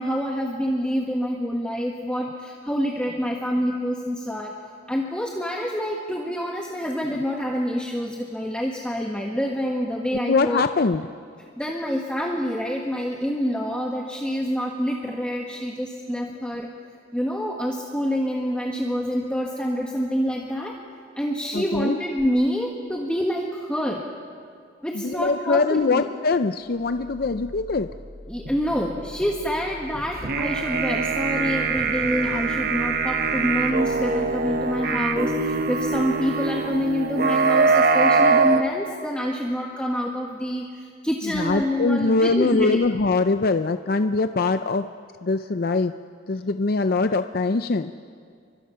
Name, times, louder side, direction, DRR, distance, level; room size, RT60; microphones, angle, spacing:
voice 1, 0.0-4.6 4.9-10.6 11.6-16.7 17.1-20.8 21.1-24.1 24.8-26.0 28.3-42.8, equal, 5° left, -1 dB, 1.5 m, -27 dB
voice 2, 10.1-11.1 21.5-22.0 24.9-27.9 38.9-39.0 41.2-44.9 45.2-45.9 46.3-47.9, left 3 dB, 55° left, 9 dB, 0.6 m, -23 dB
sound 1, 26.5-38.5, left 1 dB, 70° right, 7.8 m, -43 dB
sound 2, 30.2-38.6, right 4 dB, 55° right, 1.2 m, -23 dB
30.0 x 24.0 x 5.7 m, 2.2 s
head